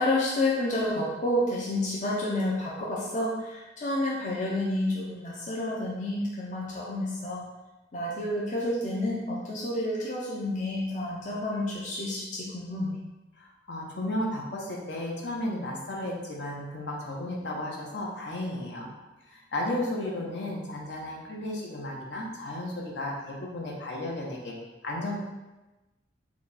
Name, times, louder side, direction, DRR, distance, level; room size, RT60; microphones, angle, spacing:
voice 1, 0.0-7.4 7.9-13.0, left 1 dB, 45° left, -5 dB, 0.6 m, -29 dB
voice 2, 13.4-18.9 19.3-24.5 24.8-25.2, left 1 dB, 70° left, -2 dB, 0.9 m, -34 dB
4.5 x 2.3 x 4.0 m, 1.1 s
head